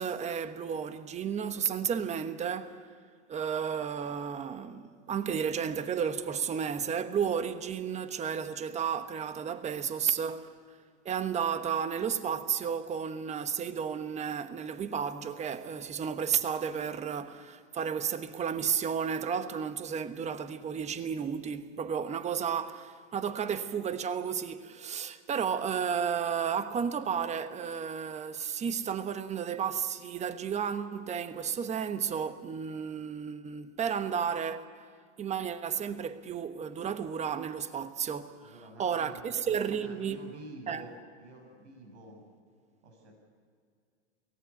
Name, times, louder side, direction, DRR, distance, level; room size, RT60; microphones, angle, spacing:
voice 1, 0.0-2.8 3.3-10.5 11.0-34.7 35.2-38.5 38.8-40.2 40.7-40.9, right 7 dB, 20° right, 1.1 m, -32 dB
voice 2, 38.4-42.2 42.8-43.1, right 1 dB, 75° right, 6.9 m, -49 dB
23.5 x 18.0 x 8.3 m
hypercardioid pair, 125°, 34 cm